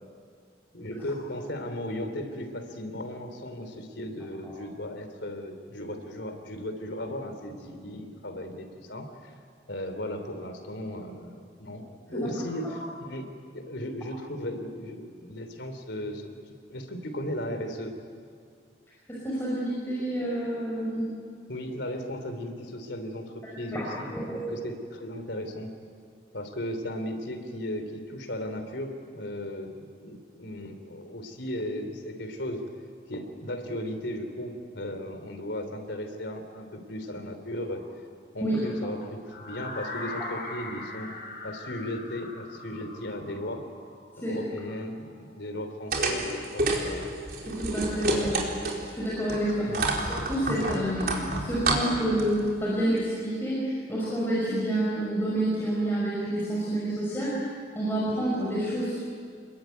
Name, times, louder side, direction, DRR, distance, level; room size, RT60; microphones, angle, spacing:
voice 1, 0.7-9.3 9.7-11.8 12.1-13.3 13.5-16.3 16.7-18.0 21.5-25.7 26.3-32.6 33.1-37.8 38.3-41.1 41.4-43.6 44.2-47.1 48.1-48.2 49.6-49.9, left 1 dB, 80° left, 7 dB, 3.5 m, -36 dB
voice 2, 19.1-21.1 23.7-24.5 38.4-38.6 44.2-44.4 47.5-48.3 48.9-57.4 57.7-59.0, right 1 dB, 10° left, -7 dB, 5.7 m, -28 dB
sound 1, 39.3-45.2, left 2 dB, 55° left, 5.4 m, -41 dB
sound 2, 45.9-48.9 49.3-52.5, right 2 dB, 55° right, 4.3 m, -29 dB
29.0 x 22.0 x 9.4 m, 2.1 s
head